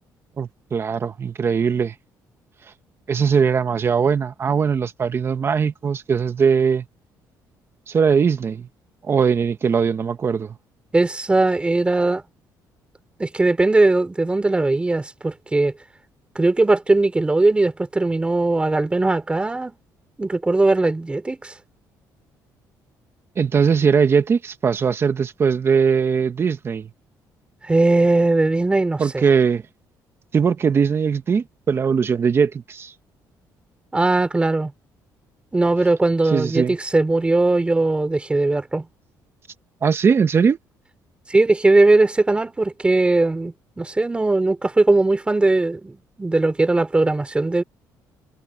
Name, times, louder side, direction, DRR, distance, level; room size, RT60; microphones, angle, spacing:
voice 1, 0.4-1.9 3.1-6.9 7.9-8.7 9.0-10.6 23.4-26.9 29.0-29.6 30.3-32.9 36.3-36.8 39.8-40.6, right 6 dB, 35° right, 1.4 m, -20 dB
voice 2, 10.9-12.2 13.2-15.7 16.4-19.8 20.2-21.5 27.6-29.2 33.9-34.7 35.5-38.9 41.3-47.6, right 2 dB, 15° right, 3.7 m, -19 dB
cardioid pair, 125°, 7 cm